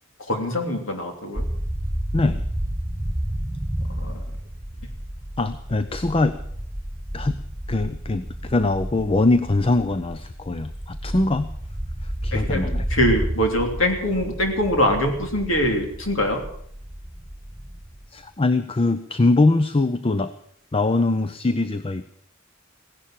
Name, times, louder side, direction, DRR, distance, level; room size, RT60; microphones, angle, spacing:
voice 1, 0.2-1.5 3.8-4.3 12.3-12.6 12.9-16.4, left 1 dB, 75° left, 3 dB, 3.0 m, -23 dB
sound 1, 1.3-18.2, equal, 15° right, 2.1 m, -31 dB
voice 2, 5.4-6.3 7.1-7.4 7.7-11.5 12.0-12.8 18.1-20.3 20.7-22.0, left 2 dB, 25° left, 12 dB, 0.6 m, -22 dB
16.5 x 11.5 x 7.5 m, 0.67 s
head